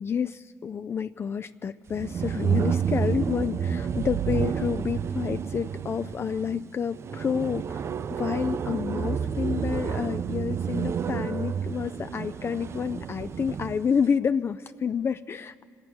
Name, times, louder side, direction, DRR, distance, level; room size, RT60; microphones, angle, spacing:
voice 1, 0.0-15.6, left 7 dB, 40° left, 10 dB, 0.3 m, -29 dB
sound 1, 1.9-13.9, right 7 dB, 45° right, 0.4 m, -30 dB
26.0 x 8.8 x 6.0 m, 2.4 s
supercardioid pair, 60°, 6 cm